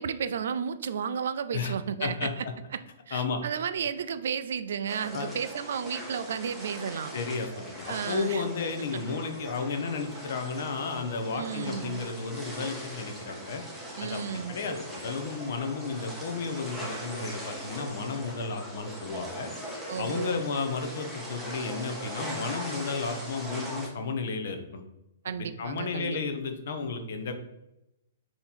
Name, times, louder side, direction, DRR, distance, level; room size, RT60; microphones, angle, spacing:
voice 1, 0.0-2.5 2.7-2.8 3.1-7.1 7.9-8.4 8.9-9.0 11.3-12.0 14.0-14.5 19.9-20.4 25.2-26.2, right 7 dB, 65° right, 12 dB, 0.3 m, -33 dB
voice 2, 2.0-2.5 3.1-3.4 5.1-5.3 7.1-13.6 14.0-14.2 14.5-19.5 20.0-24.8 25.4-27.3, left 4 dB, 55° left, 6 dB, 0.6 m, -33 dB
sound 1, 4.9-23.9, right 1 dB, ahead, 0.7 m, -40 dB
3.8 x 2.9 x 4.1 m, 0.91 s
hypercardioid pair, 170°, 0 cm